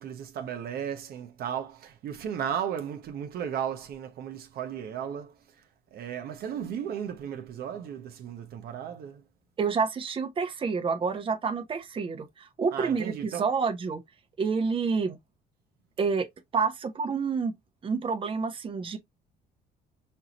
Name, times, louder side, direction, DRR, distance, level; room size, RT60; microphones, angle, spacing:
voice 1, 0.0-5.3 5.9-9.2 12.7-13.4, right 8 dB, 65° right, 0.9 m, -35 dB
voice 2, 9.6-14.0 14.4-15.2 16.0-16.3 16.5-17.5 17.8-19.0, right 5 dB, 30° right, 0.8 m, -28 dB
5.5 x 2.5 x 2.9 m
cardioid pair, 110°, 17 cm